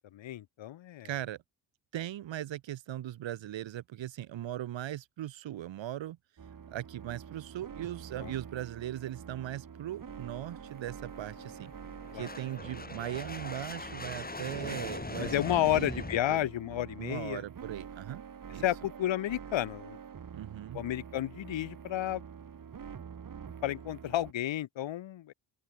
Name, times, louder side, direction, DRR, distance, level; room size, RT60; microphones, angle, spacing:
voice 1, 0.0-1.1 8.2-8.3 12.1-12.3 15.2-17.4 18.6-20.0 20.7-22.2 23.6-25.3, left 13 dB, 80° left, 3.2 m, -31 dB
voice 2, 1.0-1.4 1.9-6.2 6.7-11.7 12.1-16.0 16.3-16.5 17.0-18.2 18.5-18.6 20.3-20.8, right 12 dB, 80° right, 2.9 m, -39 dB
sound 1, 6.4-24.3, right 7 dB, 45° right, 3.1 m, -47 dB
sound 2, 9.9-16.2, left 3 dB, 20° left, 4.5 m, -42 dB
open air
cardioid pair, 85°, 45 cm